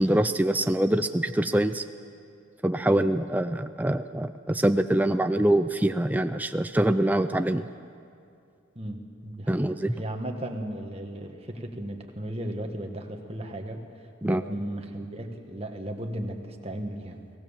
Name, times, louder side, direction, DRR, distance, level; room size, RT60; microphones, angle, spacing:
voice 1, 0.0-1.8 2.6-7.7 9.5-9.9 14.2-14.4, right 1 dB, 10° right, 9 dB, 0.4 m, -24 dB
voice 2, 8.8-17.2, right 1 dB, 30° right, 4 dB, 1.7 m, -35 dB
23.0 x 18.5 x 7.4 m, 2.4 s
head